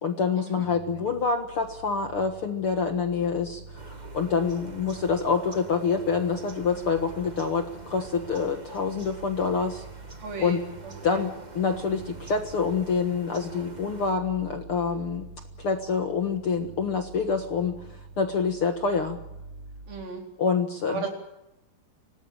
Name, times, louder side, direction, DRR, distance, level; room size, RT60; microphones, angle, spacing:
voice 1, 0.0-9.8 10.4-10.6 11.0-15.2 15.6-17.7 18.2-19.2 20.4-21.1, left 5 dB, 50° left, 6 dB, 1.8 m, -26 dB
sound 1, 0.6-20.1, right 4 dB, 35° right, 4.8 m, -47 dB
sound 2, 3.7-14.1, right 2 dB, 55° right, 0.4 m, -46 dB
voice 2, 10.2-11.2 19.9-20.2 20.9-21.1, right 4 dB, 75° right, 2 dB, 6.1 m, -35 dB
26.0 x 18.0 x 8.8 m, 0.91 s
omnidirectional pair, 4.2 m